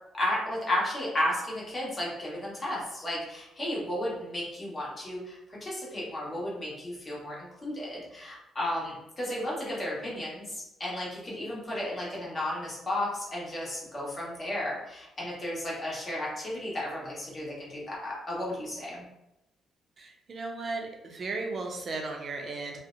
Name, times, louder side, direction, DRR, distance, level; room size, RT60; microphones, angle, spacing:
voice 1, 0.1-19.0, left 1 dB, 30° left, -5 dB, 1.1 m, -33 dB
voice 2, 20.0-22.8, right 3 dB, 45° right, 2 dB, 0.5 m, -35 dB
2.7 x 2.1 x 2.5 m, 0.89 s
cardioid pair, 90°, 0 cm